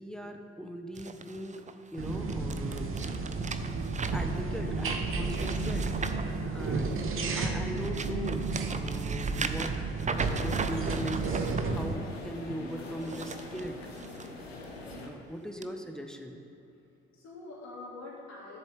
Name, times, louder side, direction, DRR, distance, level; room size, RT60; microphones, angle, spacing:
voice 1, 0.0-1.6 1.9-3.0 4.1-9.9 10.1-11.4 11.6-13.8 15.0-16.4, equal, ahead, 4 dB, 1.0 m, -40 dB
sound 1, 0.9-7.1 7.5-11.6 12.9-14.3 14.7-15.0 15.6-15.7, right 5 dB, 25° right, 0.6 m, -39 dB
sound 2, 2.0-11.9, right 3 dB, 45° right, 1.1 m, -32 dB
sound 3, 10.1-15.1, left 2 dB, 90° left, 0.9 m, -43 dB
voice 2, 15.1-15.7 17.1-18.6, left 2 dB, 60° left, -5 dB, 2.3 m, -46 dB
13.5 x 7.5 x 3.4 m, 2.9 s
hypercardioid pair, 45°, 30 cm